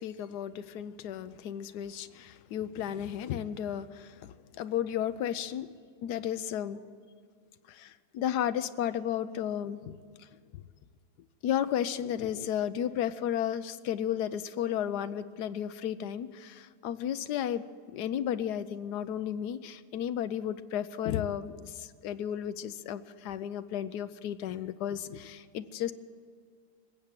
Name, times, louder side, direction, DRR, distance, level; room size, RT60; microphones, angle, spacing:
voice 1, 0.0-5.7 6.0-6.8 7.7-10.0 11.4-25.9, left 10 dB, 85° left, 12 dB, 1.2 m, -33 dB
20.0 x 8.1 x 9.0 m, 2.1 s
omnidirectional pair, 1.7 m